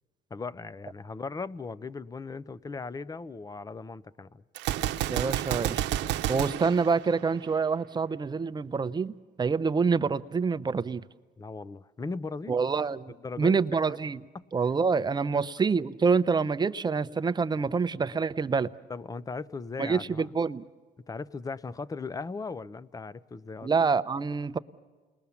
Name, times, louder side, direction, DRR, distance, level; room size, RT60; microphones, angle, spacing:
voice 1, 0.3-4.4 11.4-12.6 13.1-14.0 14.3-14.5 15.3-15.5 18.9-20.3 21.1-23.7, left 4 dB, 20° left, 0.6 m, -38 dB
Gunshot gunfire, 4.6-7.7, right 12 dB, 80° right, 0.8 m, -30 dB
voice 2, 5.1-5.8 6.3-11.0 12.5-14.2 14.5-18.7 19.8-20.6 23.6-24.6, right 5 dB, 25° right, 0.7 m, -27 dB
29.5 x 20.5 x 7.1 m
cardioid pair, 110°, 18 cm